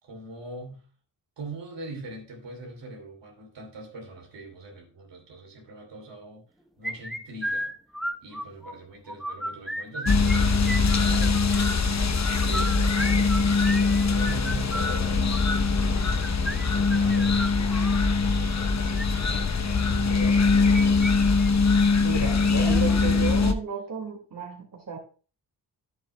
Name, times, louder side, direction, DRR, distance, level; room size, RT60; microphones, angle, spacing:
voice 1, 0.0-0.8 1.4-6.4 6.8-7.7 8.2-21.0, right 2 dB, 80° right, 2.9 m, -42 dB
sound 1, 6.8-8.7 9.1-10.4 10.6-11.7 12.3-18.0 18.7-19.0 20.3-21.1 21.4-21.5 21.9-22.0 22.6-23.0, equal, ahead, 0.9 m, -34 dB
sound 2, 10.1-23.5, left 4 dB, 40° left, 0.9 m, -22 dB
voice 2, 22.0-25.0, right 4 dB, 50° right, 2.3 m, -33 dB
10.5 x 7.9 x 2.2 m
cardioid pair, 55°, 42 cm